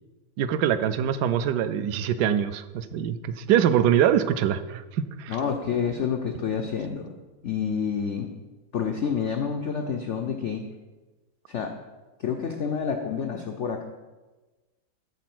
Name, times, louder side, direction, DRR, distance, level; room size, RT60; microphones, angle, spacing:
voice 1, 0.4-5.4, right 9 dB, 70° right, 12 dB, 1.0 m, -24 dB
voice 2, 5.3-7.2 7.4-8.3 8.7-10.6 11.5-11.7 12.2-13.8, left 6 dB, 90° left, 4 dB, 0.6 m, -28 dB
13.5 x 4.5 x 6.0 m, 1.2 s
omnidirectional pair, 2.1 m